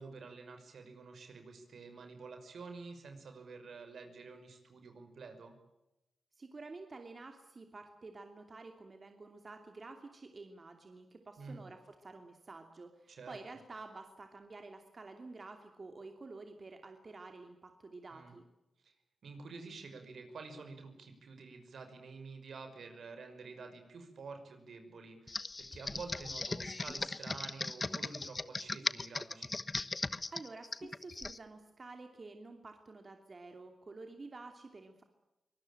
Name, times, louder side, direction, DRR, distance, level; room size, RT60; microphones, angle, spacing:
voice 1, 0.0-5.6 11.4-11.6 13.1-13.3 18.1-18.3 18.8-18.9 19.2-29.5, right 4 dB, 70° right, 6 dB, 5.7 m, -49 dB
voice 2, 6.4-18.4 30.3-35.0, right 3 dB, 40° right, 5 dB, 2.7 m, -50 dB
Computer keyboard, 25.3-31.4, left 3 dB, 30° left, 1.0 m, -38 dB
24.5 x 20.0 x 9.0 m, 0.94 s
cardioid pair, 80°, 0 cm